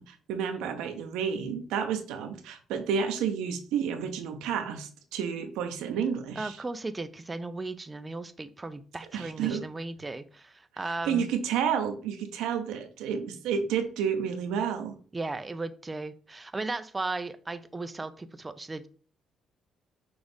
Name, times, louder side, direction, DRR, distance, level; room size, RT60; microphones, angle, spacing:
voice 1, 0.0-6.6 9.1-9.6 11.0-14.9, right 7 dB, 85° right, 7 dB, 0.7 m, -30 dB
voice 2, 6.4-11.3 15.1-18.9, right 3 dB, 25° right, 11 dB, 0.4 m, -36 dB
6.1 x 2.5 x 3.4 m, 0.41 s
supercardioid pair, 65°, 0 cm